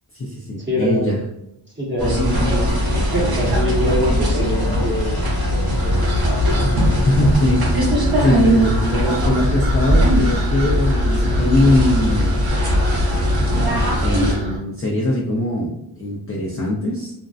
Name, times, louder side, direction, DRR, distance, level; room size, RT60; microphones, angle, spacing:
voice 1, 0.1-1.2 7.1-12.4 14.0-17.1, left 1 dB, 30° left, -4 dB, 0.5 m, -21 dB
voice 2, 0.7-1.2 1.8-2.7 3.1-6.3, equal, 25° right, -4 dB, 0.9 m, -24 dB
Bowed string instrument, 2.0-7.8, right 3 dB, 45° left, 1.1 m, -34 dB
sound 1, 2.0-14.3, equal, 50° right, 0.8 m, -19 dB
sound 2, 5.8-14.6, equal, 75° right, 0.9 m, -27 dB
2.6 x 2.0 x 2.3 m, 0.81 s
wide cardioid pair, 70°, 48 cm